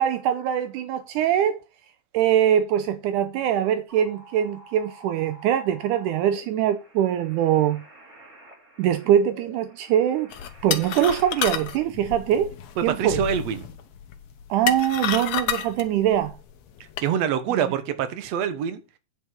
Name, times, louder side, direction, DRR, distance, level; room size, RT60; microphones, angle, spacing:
voice 1, 0.0-1.6 2.1-7.8 8.8-10.3 10.6-12.5 12.8-13.2 14.5-16.3 17.5-17.6, right 10 dB, 80° right, 2.1 m, -23 dB
sound 1, 3.9-11.8, right 2 dB, 25° right, 3.4 m, -48 dB
sound 2, 10.3-17.1, left 9 dB, 65° left, 2.0 m, -31 dB
voice 2, 12.8-13.7 17.0-18.8, right 8 dB, 60° right, 2.1 m, -25 dB
9.5 x 5.5 x 5.8 m
omnidirectional pair, 3.8 m